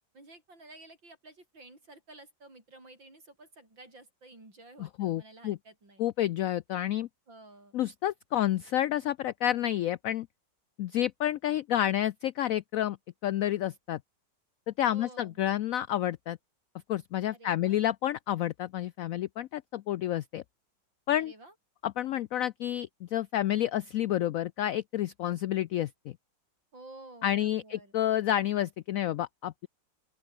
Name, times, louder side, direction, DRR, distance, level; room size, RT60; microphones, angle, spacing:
voice 1, 0.1-6.0 7.3-7.8 14.9-15.4 17.3-17.8 21.2-21.5 26.7-28.0, right 2 dB, 90° right, 8.8 m, -52 dB
voice 2, 5.0-5.6 6.0-7.1 7.7-10.3 10.8-13.0 13.2-14.0 14.7-16.4 16.9-20.4 21.1-21.3 21.8-25.9 27.2-29.7, left 12 dB, 90° left, 0.7 m, -29 dB
open air
omnidirectional pair, 2.0 m